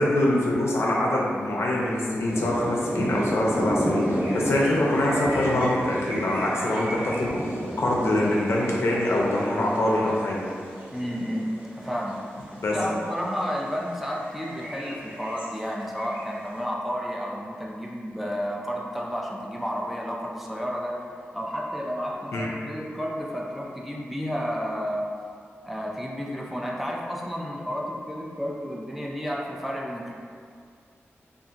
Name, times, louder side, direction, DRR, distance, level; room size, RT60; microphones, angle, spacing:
voice 1, 0.0-10.4 12.6-12.8 22.3-22.5, left 1 dB, 70° left, -3 dB, 0.5 m, -24 dB
sound 1, 2.3-12.7 13.2-13.4 13.8-16.4, equal, 45° right, 0.9 m, -32 dB
voice 2, 10.9-12.2 12.5-21.0 21.3-25.1 25.6-30.1, equal, 5° right, -3 dB, 0.3 m, -31 dB
2.8 x 2.4 x 2.4 m, 2.1 s
wide cardioid pair, 85°, 5 cm